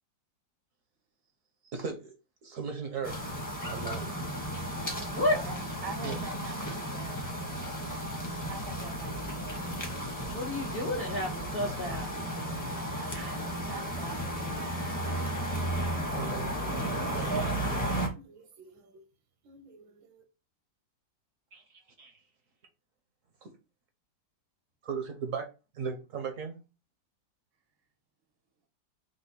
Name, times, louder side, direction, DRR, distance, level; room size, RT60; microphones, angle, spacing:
voice 1, 1.6-2.1 2.4-3.3 3.7-4.1 6.0-6.5 7.1-7.3 7.6-7.9 10.2-10.3 13.1-13.3 16.1-16.8 21.5-22.2 23.4-23.5 24.8-25.5 25.7-26.6, right 5 dB, 60° right, 0.9 m, -38 dB
sound 1, 3.0-18.1, right 1 dB, 15° left, 0.6 m, -34 dB
voice 2, 5.8-7.2 8.5-9.6 13.0-15.0 16.7-17.5, right 3 dB, 35° right, 0.4 m, -43 dB
voice 3, 10.3-12.1, left 1 dB, 75° left, 0.5 m, -30 dB
voice 4, 17.0-19.0 19.4-20.2, right 5 dB, 75° right, 1.6 m, -49 dB
5.2 x 2.1 x 4.1 m
omnidirectional pair, 2.1 m